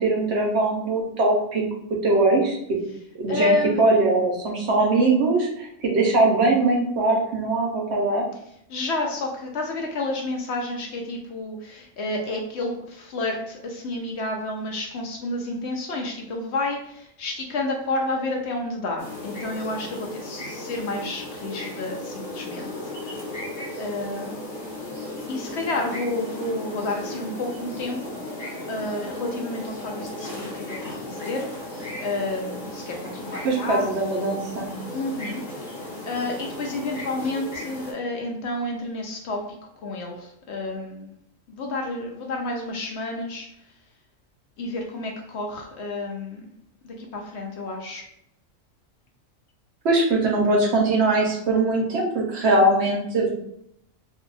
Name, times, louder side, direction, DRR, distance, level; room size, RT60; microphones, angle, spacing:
voice 1, 0.0-1.6 2.0-2.6 3.2-8.2 33.4-34.7 49.8-53.3, right 2 dB, 65° right, 0 dB, 0.9 m, -21 dB
voice 2, 3.3-3.8 8.7-22.9 23.8-24.5 25.3-28.1 28.7-33.9 34.9-39.5 39.8-41.2 41.5-43.5 44.6-46.5 46.8-48.0, left 2 dB, 65° left, 1 dB, 0.8 m, -30 dB
sound 1, 19.0-37.9, left 1 dB, 45° left, 1.0 m, -35 dB
2.7 x 2.2 x 3.8 m, 0.75 s
omnidirectional pair, 1.4 m